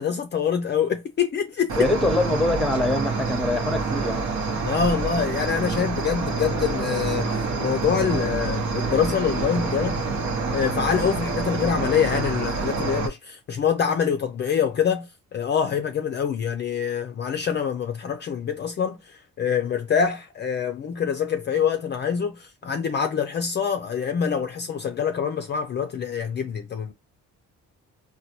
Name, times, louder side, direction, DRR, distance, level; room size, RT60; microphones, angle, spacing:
voice 1, 0.0-1.8 4.6-7.3 7.6-10.0 10.5-26.9, left 7 dB, 35° left, 0.4 m, -25 dB
Cricket, 1.7-13.1, right 4 dB, 65° right, 0.9 m, -27 dB
voice 2, 1.8-4.4, left 2 dB, ahead, 0.8 m, -24 dB
3.9 x 2.2 x 2.9 m
cardioid pair, 90°, 30 cm